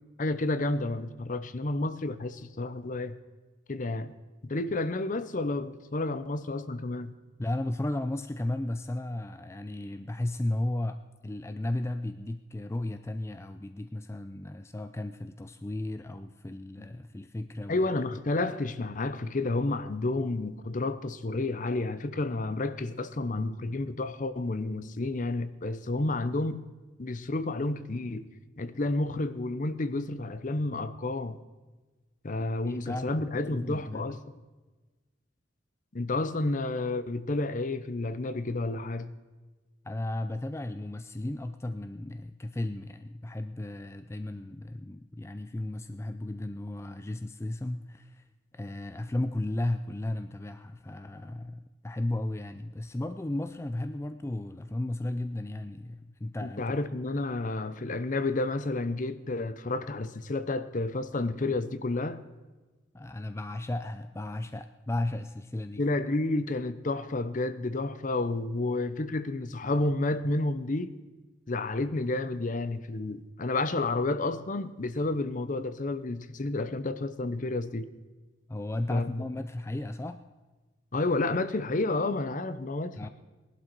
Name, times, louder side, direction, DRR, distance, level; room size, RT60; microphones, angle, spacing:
voice 1, 0.2-3.2 3.7-4.1 4.4-7.1 16.8-16.9 17.7-26.6 27.0-28.3 28.6-31.4 32.2-34.2 35.9-39.1 56.4-62.2 65.8-70.9 71.5-77.9 78.9-79.2 80.9-83.1, left 2 dB, 45° left, 0.7 m, -30 dB
voice 2, 7.4-11.0 11.2-17.9 32.7-34.1 39.8-48.2 48.5-56.8 62.9-65.8 78.5-80.2 83.0-83.1, left 1 dB, 15° left, 0.4 m, -34 dB
19.0 x 11.5 x 4.6 m
head